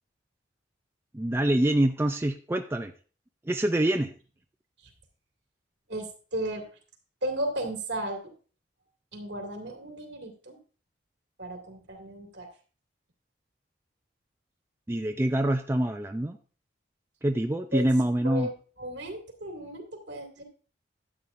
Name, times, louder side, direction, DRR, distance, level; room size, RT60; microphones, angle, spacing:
voice 1, 1.1-2.9 3.5-4.1 14.9-16.4 17.2-18.5, right 1 dB, 15° right, 5 dB, 0.4 m, -25 dB
voice 2, 5.9-6.7 7.2-8.3 9.1-10.6 11.4-12.5 17.7-17.9 18.2-18.5 18.8-20.4, right 1 dB, 65° right, 3 dB, 2.3 m, -35 dB
12.5 x 8.3 x 2.5 m, 0.38 s
head